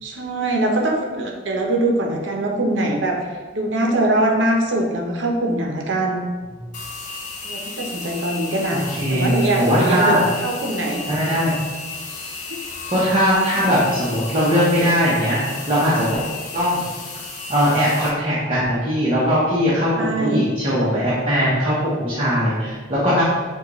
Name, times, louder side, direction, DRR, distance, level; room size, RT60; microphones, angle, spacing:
voice 1, 0.0-3.2 3.5-6.3 7.4-10.1 10.4-11.0 12.5-12.6 19.9-20.4, right 1 dB, 75° right, 1 dB, 0.7 m, -22 dB
sound 1, 6.7-18.1, left 3 dB, 40° left, 0.6 m, -34 dB
voice 2, 8.7-9.3 9.6-10.2 11.0-11.5 12.9-16.1 16.5-16.8 17.5-23.2, equal, 30° right, -9 dB, 0.9 m, -20 dB
6.4 x 2.3 x 3.0 m, 1.4 s
head